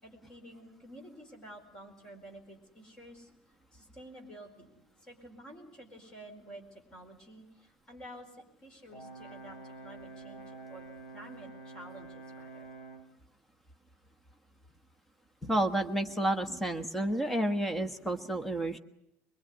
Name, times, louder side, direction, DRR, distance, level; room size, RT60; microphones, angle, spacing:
voice 1, 0.0-3.3 3.7-10.9 11.1-12.7, right 1 dB, 20° left, 4 dB, 4.6 m, -51 dB
Brass instrument, 8.9-13.1, right 3 dB, 55° left, 2.7 m, -48 dB
voice 2, 15.4-18.8, right 1 dB, 5° left, 7 dB, 1.3 m, -30 dB
23.0 x 22.5 x 9.5 m, 0.80 s
cardioid pair, 180°, 4 cm